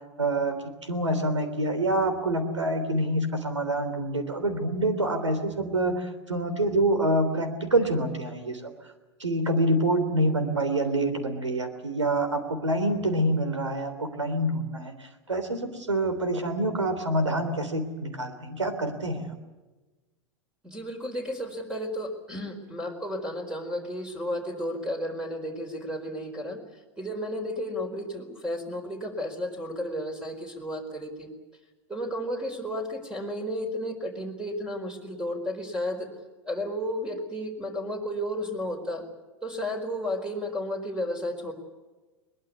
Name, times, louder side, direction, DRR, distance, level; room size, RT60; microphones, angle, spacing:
voice 1, 0.2-0.6 0.9-8.7 9.2-14.9 15.3-19.3, right 1 dB, 85° right, 8 dB, 3.4 m, -26 dB
voice 2, 20.6-26.6 27.0-31.3 31.9-36.1 36.5-39.0 39.4-41.5, equal, 5° right, 4 dB, 4.5 m, -33 dB
22.0 x 21.5 x 8.3 m, 1.2 s
figure-of-eight pair, 90°, 15 cm